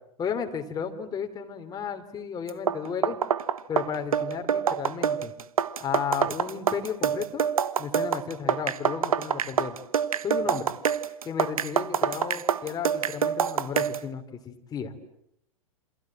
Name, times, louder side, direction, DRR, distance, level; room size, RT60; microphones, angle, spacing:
voice 1, 0.2-3.2 3.7-5.3 5.8-7.4 7.8-9.8 10.2-10.7 11.2-15.0, left 7 dB, 20° left, 5 dB, 3.2 m, -33 dB
sound 1, 2.5-14.1, right 7 dB, 75° right, 1.2 m, -26 dB
28.5 x 27.0 x 7.6 m, 0.76 s
figure-of-eight pair, 105°, 18 cm